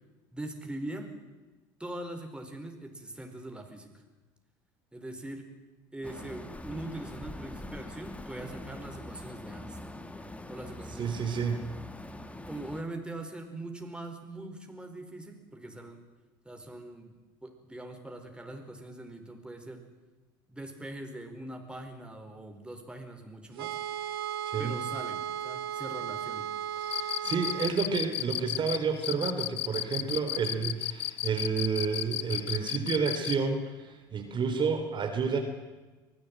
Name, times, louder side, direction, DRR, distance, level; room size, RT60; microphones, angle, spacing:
voice 1, 0.3-1.1 1.8-3.9 4.9-5.5 5.9-11.4 12.5-16.0 16.4-19.8 20.5-23.8 24.6-26.5, right 1 dB, 10° right, 4 dB, 4.8 m, -42 dB
sound 1, 6.0-12.8, left 1 dB, 10° left, 2.1 m, -43 dB
voice 2, 11.0-11.6 24.5-24.7 26.8-35.4, right 5 dB, 40° right, 5 dB, 3.5 m, -30 dB
sound 2, 23.6-27.8, right 9 dB, 80° right, 1.4 m, -35 dB
Cricket, 26.8-33.4, left 16 dB, 60° left, 0.8 m, -33 dB
24.0 x 16.5 x 9.1 m, 1.2 s
hypercardioid pair, 75°, 12 cm